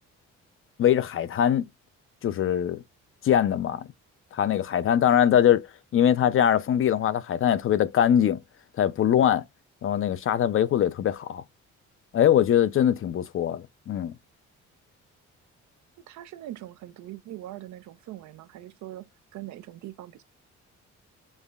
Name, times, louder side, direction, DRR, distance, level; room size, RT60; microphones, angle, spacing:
voice 1, 0.8-1.7 2.2-2.8 3.2-3.9 4.3-5.7 5.9-8.4 8.8-9.4 9.8-11.4 12.1-14.1, left 10 dB, 45° left, 0.4 m, -22 dB
voice 2, 16.1-20.2, right 14 dB, 70° right, 0.5 m, -42 dB
5.3 x 2.1 x 2.3 m
cardioid pair, 90°, 30 cm